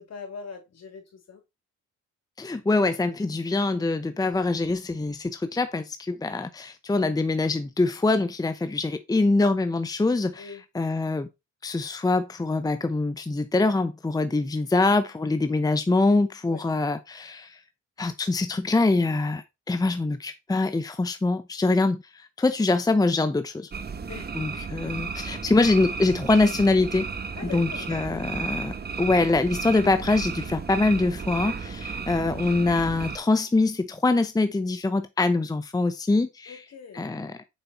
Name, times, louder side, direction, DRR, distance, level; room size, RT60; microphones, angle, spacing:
voice 1, 0.0-1.4 10.4-10.6 16.4-16.6 24.1-24.3 27.3-28.2 36.5-37.1, left 5 dB, 60° left, 3.5 m, -41 dB
voice 2, 2.4-11.3 11.6-17.6 18.0-23.7 24.3-27.1 27.5-36.6 36.9-37.4, left 3 dB, 10° left, 0.7 m, -24 dB
sound 1, 23.7-33.2, right 5 dB, 30° right, 1.1 m, -34 dB
7.2 x 5.3 x 4.2 m
cardioid pair, 90°, 30 cm